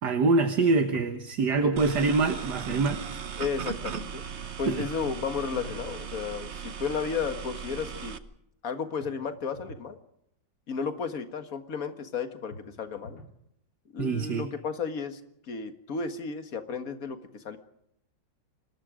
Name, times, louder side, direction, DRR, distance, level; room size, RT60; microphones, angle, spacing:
voice 1, 0.0-3.0 4.7-4.8 14.0-14.5, right 3 dB, 65° right, 7 dB, 1.9 m, -25 dB
sound 1, 0.9-1.9 5.0-5.9 9.0-9.9 12.5-13.4, left 2 dB, 75° left, 2.6 m, -46 dB
sound 2, 1.8-8.2, right 7 dB, 45° right, 1.1 m, -38 dB
voice 2, 3.4-4.2 4.6-8.2 8.6-10.0 10.7-13.2 13.9-15.2 15.5-17.6, left 5 dB, 50° left, 8 dB, 2.0 m, -33 dB
26.5 x 20.0 x 5.1 m, 0.75 s
omnidirectional pair, 2.0 m